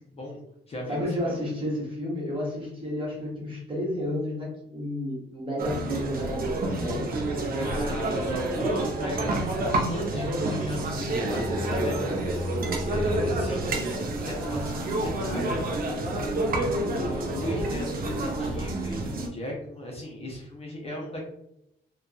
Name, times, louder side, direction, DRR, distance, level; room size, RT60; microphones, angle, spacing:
voice 1, 0.1-0.4 0.7-1.4 7.6-12.2 12.8-13.9 14.2-21.3, left 1 dB, 30° left, -2 dB, 0.7 m, -36 dB
voice 2, 0.9-7.5 8.1-8.3 10.1-10.6, left 1 dB, 25° right, -5 dB, 1.3 m, -32 dB
sound 1, 5.6-19.3, right 1 dB, 50° right, 0.6 m, -28 dB
2.6 x 2.2 x 2.4 m, 0.80 s
cardioid pair, 90°, 20 cm